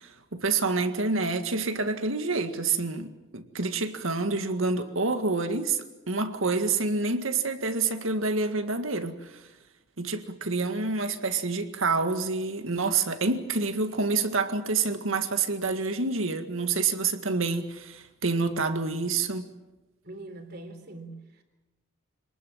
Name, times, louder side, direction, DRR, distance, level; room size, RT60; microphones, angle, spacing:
voice 1, 0.0-9.4 10.0-19.4, right 3 dB, 75° right, 2.0 m, -28 dB
voice 2, 20.0-21.4, right 2 dB, 50° right, 3.6 m, -42 dB
27.0 x 20.0 x 7.4 m
head